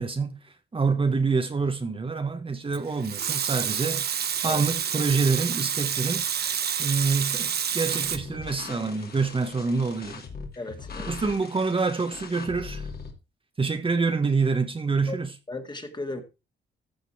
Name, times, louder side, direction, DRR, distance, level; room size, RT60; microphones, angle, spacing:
voice 1, 0.0-4.1 4.4-6.2 6.8-10.2 11.1-12.9 13.6-15.4, right 4 dB, 30° right, 1.2 m, -26 dB
Water tap faucet / Sink (filling or washing) / Liquid, 2.7-8.2, right 8 dB, 55° right, 0.9 m, -28 dB
sound 1, 7.8-13.1, left 5 dB, 55° left, 2.6 m, -40 dB
voice 2, 10.6-11.1 15.1-15.2 15.5-16.2, left 2 dB, 25° left, 1.9 m, -35 dB
14.5 x 5.3 x 4.6 m
cardioid pair, 100°, 19 cm